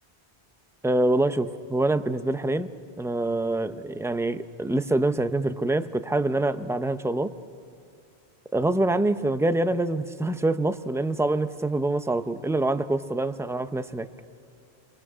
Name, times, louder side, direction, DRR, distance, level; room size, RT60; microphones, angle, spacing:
voice 1, 0.8-2.7 3.0-7.3 8.5-14.1, right 2 dB, 5° right, 9 dB, 0.5 m, -25 dB
29.0 x 23.0 x 6.2 m, 2.5 s
omnidirectional pair, 1.1 m